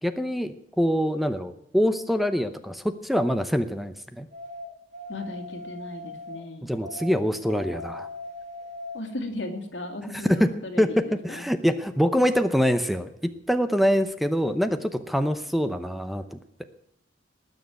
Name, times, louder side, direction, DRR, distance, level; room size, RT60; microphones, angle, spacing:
voice 1, 0.0-4.3 6.6-8.1 10.3-10.5 10.8-16.6, equal, ahead, 10 dB, 0.7 m, -25 dB
sound 1, 4.3-6.4 6.8-9.1, left 1 dB, 40° right, 3.8 m, -39 dB
voice 2, 5.1-6.8 8.9-11.5, left 2 dB, 70° left, 5 dB, 2.6 m, -36 dB
19.5 x 6.6 x 9.2 m, 0.74 s
head